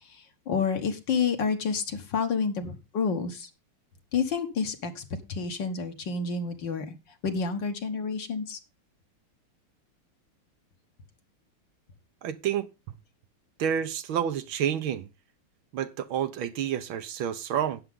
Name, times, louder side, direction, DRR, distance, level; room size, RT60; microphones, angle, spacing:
voice 1, 0.5-3.5 4.1-7.0 7.2-8.6, left 5 dB, 60° left, 2.1 m, -29 dB
voice 2, 12.2-12.7 13.6-15.1 15.7-17.8, right 9 dB, 70° right, 1.6 m, -29 dB
12.5 x 9.1 x 3.7 m
omnidirectional pair, 2.4 m